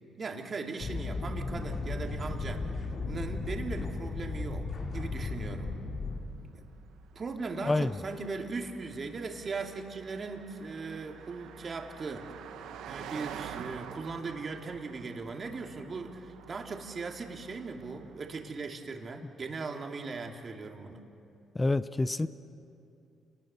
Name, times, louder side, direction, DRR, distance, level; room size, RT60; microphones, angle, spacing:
voice 1, 0.2-2.7 3.1-4.7 4.9-5.7 6.4-6.6 7.1-12.3 12.9-21.0, right 4 dB, 40° right, 2 dB, 2.5 m, -39 dB
sound 1, 0.8-6.2, left 3 dB, 60° left, 3.1 m, -35 dB
Car passing by, 3.0-18.7, right 8 dB, 85° right, 1.2 m, -49 dB
voice 2, 21.5-22.3, left 2 dB, 20° left, 14 dB, 0.6 m, -27 dB
29.5 x 20.0 x 6.9 m, 2.6 s
cardioid pair, 90°, 0 cm